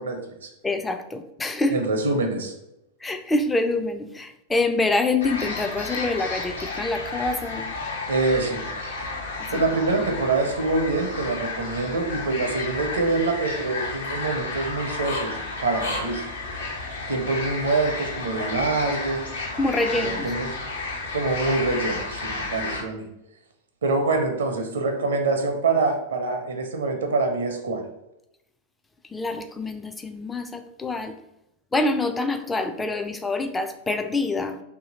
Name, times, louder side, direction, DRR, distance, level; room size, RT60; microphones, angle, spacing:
voice 1, 0.0-0.5 1.7-2.5 8.1-8.6 9.5-16.3 17.1-19.2 19.9-20.5 21.1-23.1 23.8-27.8, right 3 dB, 65° right, 5 dB, 0.6 m, -25 dB
voice 2, 0.6-1.8 3.0-7.7 9.5-9.6 19.6-20.3 29.1-31.2 31.7-34.6, left 2 dB, 10° left, 8 dB, 0.3 m, -26 dB
sound 1, 5.2-22.8, left 3 dB, 70° left, 0.8 m, -32 dB
2.7 x 2.7 x 3.8 m, 0.84 s
figure-of-eight pair, 90°, 0 cm